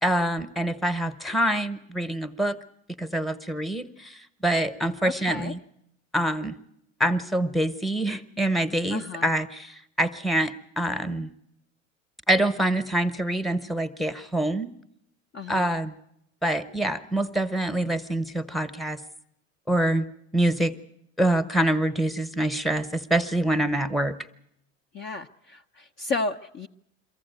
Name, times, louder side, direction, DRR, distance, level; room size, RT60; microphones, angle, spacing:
voice 1, 0.0-2.5 3.0-5.6 6.1-6.6 7.0-11.3 12.3-14.7 15.5-15.9 16.4-19.0 19.7-20.0 20.3-20.7 21.2-24.2, right 1 dB, ahead, 11 dB, 1.1 m, -25 dB
voice 2, 5.0-5.5 8.9-9.3 15.3-15.7 24.9-26.7, left 3 dB, 30° left, 4 dB, 0.8 m, -33 dB
23.5 x 14.5 x 9.3 m, 0.78 s
hypercardioid pair, 90°, 40 cm